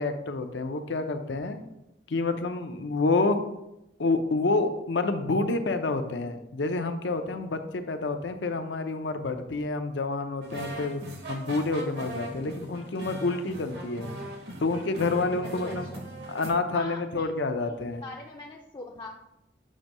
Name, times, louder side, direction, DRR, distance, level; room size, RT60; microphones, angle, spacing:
voice 1, 0.0-1.6 2.1-3.4 4.0-11.0 11.3-14.1 14.6-15.9 16.3-18.0, left 3 dB, 85° left, 7 dB, 0.6 m, -28 dB
sound 1, 10.4-16.5, right 1 dB, 65° right, 1.0 m, -39 dB
voice 2, 15.4-16.0 16.7-19.1, left 2 dB, 25° left, 0 dB, 0.4 m, -43 dB
7.4 x 2.7 x 5.3 m, 0.88 s
head